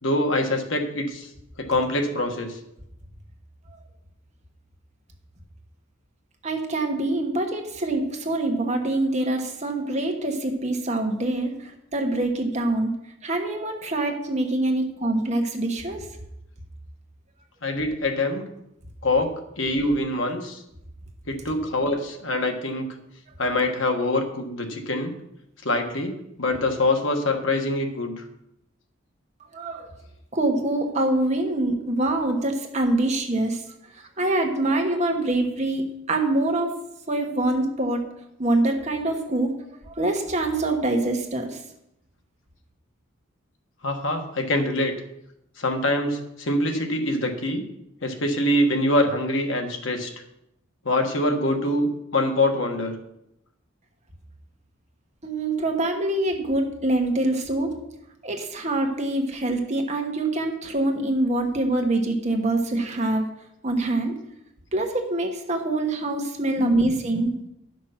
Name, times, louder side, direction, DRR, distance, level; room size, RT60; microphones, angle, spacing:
voice 1, 0.0-1.3 1.6-2.6 17.6-18.5 19.0-20.6 21.3-22.9 23.4-25.2 25.6-28.1 43.8-44.9 45.6-47.6 48.0-50.1 50.8-53.0 66.6-66.9 67.1-67.2, left 1 dB, 65° left, 4 dB, 1.5 m, -24 dB
voice 2, 6.4-12.9 13.2-16.1 29.5-29.9 30.3-33.6 34.2-36.7 37.1-38.0 38.4-39.5 39.8-41.6 55.2-57.7 58.2-63.2 63.6-64.2 64.7-67.3, right 2 dB, 35° right, 3 dB, 1.3 m, -25 dB
11.0 x 6.1 x 5.8 m, 0.82 s
head